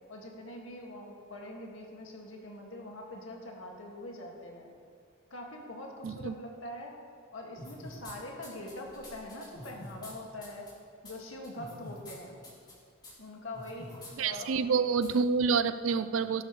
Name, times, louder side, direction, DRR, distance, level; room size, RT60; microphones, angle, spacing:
voice 1, 0.1-4.7 5.3-6.9 7.3-10.7 11.0-12.4 13.2-14.8, left 1 dB, 70° left, 0 dB, 2.0 m, -43 dB
voice 2, 6.0-6.3 14.2-16.4, right 5 dB, 75° right, 12 dB, 0.5 m, -28 dB
sound 1, 7.6-8.1 8.4-10.1 10.4-10.7 11.0-11.1 11.4-12.2 12.4-12.7 13.0-13.1 13.5-14.1 14.4-14.5 15.0-15.1, left 1 dB, 20° left, 3.7 m, -47 dB
17.0 x 12.0 x 3.2 m, 2.4 s
head